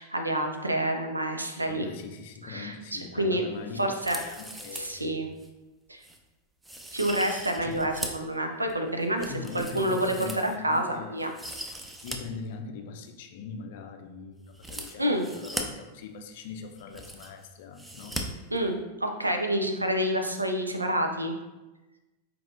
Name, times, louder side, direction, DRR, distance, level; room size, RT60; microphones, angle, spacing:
voice 1, 0.0-1.9 2.4-3.4 3.8-4.2 4.7-5.3 5.9-6.0 6.9-11.3 15.0-15.3 18.5-18.8 19.0-21.3, right 1 dB, 85° right, 4 dB, 0.5 m, -28 dB
voice 2, 1.7-5.1 7.6-7.9 9.0-11.3 12.0-18.2, left 5 dB, 50° left, 5 dB, 0.5 m, -41 dB
sound 1, 3.9-5.0 5.4-5.5 6.0-6.2 6.6-8.3 8.7-10.8 11.2-12.2 12.4-12.5 14.5-15.6 16.4-16.5 16.7-17.4 17.8-18.2 18.5-18.6, right 1 dB, 5° right, 0.5 m, -39 dB
4.2 x 4.1 x 2.5 m, 1.1 s
figure-of-eight pair, 90°, 0 cm